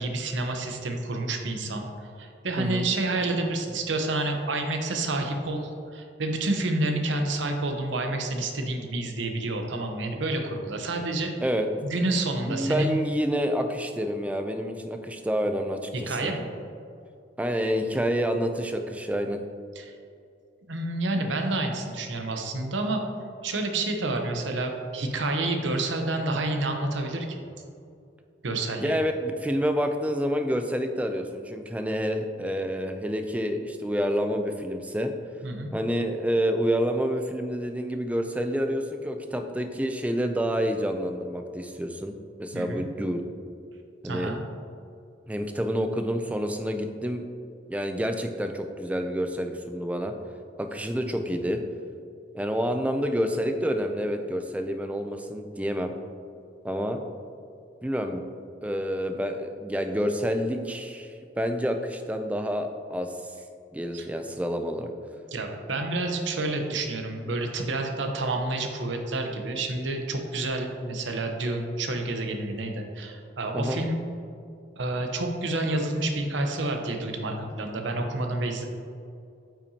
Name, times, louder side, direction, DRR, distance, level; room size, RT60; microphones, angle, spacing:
voice 1, 0.0-1.9 2.2-11.3 11.8-13.0 15.9-16.4 19.7-19.9 20.7-23.0 23.4-27.3 28.4-29.0 35.4-35.7 42.5-42.8 44.0-44.4 63.9-64.1 65.3-74.0 74.8-78.6, right 2 dB, 80° right, 4 dB, 0.8 m, -29 dB
voice 2, 2.6-2.9 11.4-11.7 12.5-16.3 17.4-19.4 28.8-35.1 35.7-43.2 44.0-44.3 45.3-47.2 47.7-50.1 50.6-51.6 52.3-55.9 56.6-57.0 57.8-58.2 58.6-63.3 63.7-64.9 73.5-73.8, equal, 5° right, 6 dB, 0.3 m, -28 dB
8.6 x 5.8 x 2.8 m, 2.5 s
head